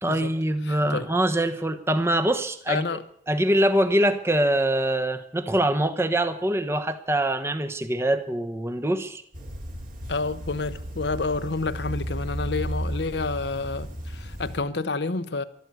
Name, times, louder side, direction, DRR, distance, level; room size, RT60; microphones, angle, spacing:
voice 1, 0.0-2.8 3.3-9.2, right 1 dB, 15° right, 1.0 m, -24 dB
voice 2, 0.6-1.1 2.7-3.0 10.1-15.4, left 3 dB, 70° left, 0.9 m, -29 dB
sound 1, 9.3-14.6, equal, 45° right, 2.7 m, -34 dB
14.0 x 12.5 x 8.2 m
head